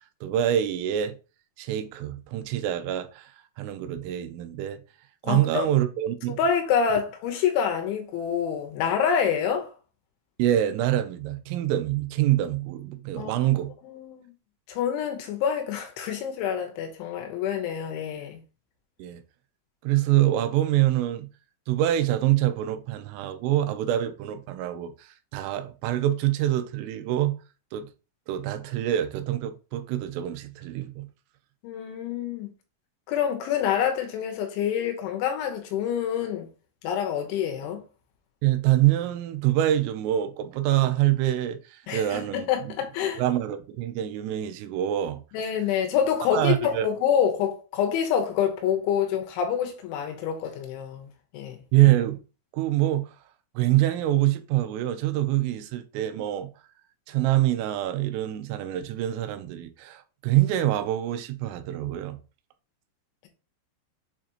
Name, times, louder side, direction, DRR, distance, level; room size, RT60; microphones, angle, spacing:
voice 1, 0.2-1.2 1.6-3.3 3.6-4.8 5.2-6.4 10.4-13.7 19.0-19.2 19.8-21.3 21.7-27.4 27.7-27.9 28.3-31.1 38.4-42.5 43.2-45.2 46.3-46.9 51.7-52.2 52.5-53.1 53.6-56.5 57.1-62.2, right 13 dB, 85° right, 3.3 m, -25 dB
voice 2, 5.2-5.7 6.4-9.7 13.2-13.5 13.8-14.3 14.7-18.4 31.6-32.5 33.1-36.5 36.8-37.8 41.9-43.2 45.3-51.6, left 8 dB, 75° left, 3.2 m, -27 dB
7.6 x 5.0 x 2.9 m
omnidirectional pair, 5.9 m